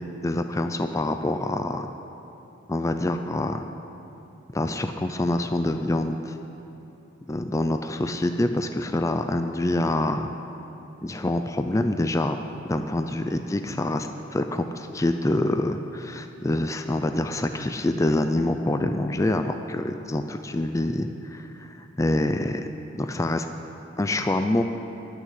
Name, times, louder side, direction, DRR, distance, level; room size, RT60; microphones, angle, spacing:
voice 1, 0.2-1.9 2.7-3.7 4.5-6.4 7.3-10.3 11.0-12.4 12.7-22.7 23.0-23.5 24.0-24.6, left 1 dB, 15° left, 7 dB, 0.4 m, -26 dB
15.0 x 6.5 x 9.7 m, 3.0 s
head